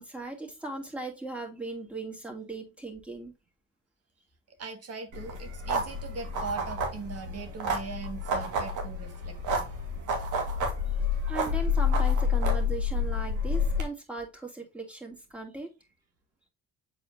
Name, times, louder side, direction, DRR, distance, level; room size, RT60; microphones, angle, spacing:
voice 1, 0.0-3.3 11.3-15.7, right 2 dB, 5° right, 2.5 m, -38 dB
voice 2, 4.6-9.6, right 4 dB, 55° right, 1.9 m, -40 dB
sound 1, 5.1-13.8, left 3 dB, 80° right, 2.1 m, -29 dB
7.9 x 4.3 x 2.8 m
cardioid pair, 90°, 30 cm